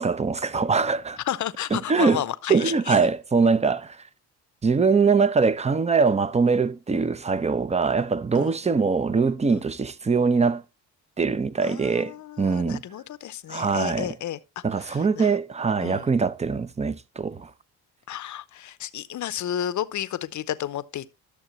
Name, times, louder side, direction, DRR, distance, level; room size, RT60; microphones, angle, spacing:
voice 1, 0.0-1.2 1.7-2.2 2.5-4.0 4.6-10.6 11.2-12.8 13.5-14.1 14.6-17.5, right 5 dB, 15° right, 0.6 m, -22 dB
voice 2, 1.3-3.0 8.3-8.5 9.5-9.6 11.6-14.4 14.8-15.3 15.8-16.1 18.1-21.1, left 11 dB, 45° left, 0.7 m, -32 dB
11.5 x 6.5 x 3.0 m
supercardioid pair, 75°, 40 cm